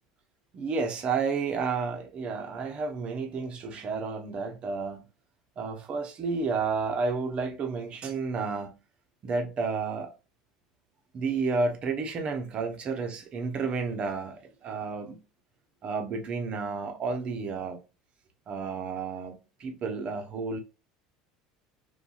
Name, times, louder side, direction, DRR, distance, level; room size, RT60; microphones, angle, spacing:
voice 1, 0.5-5.0 5.6-8.7 9.2-10.1 11.1-15.2 15.8-17.8 18.5-20.6, right 4 dB, 40° right, 0.7 m, -31 dB
2.6 x 2.2 x 2.3 m
hypercardioid pair, 90°, 3 cm